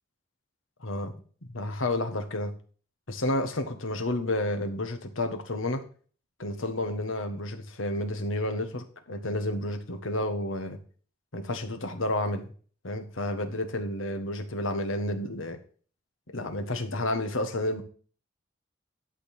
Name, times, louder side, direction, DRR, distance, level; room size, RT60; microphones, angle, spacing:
voice 1, 0.8-1.1 1.5-2.5 3.1-5.8 6.4-10.8 11.3-12.5 12.8-15.6 16.3-17.8, left 1 dB, 85° left, 7 dB, 1.5 m, -30 dB
11.5 x 3.9 x 6.9 m, 0.42 s
head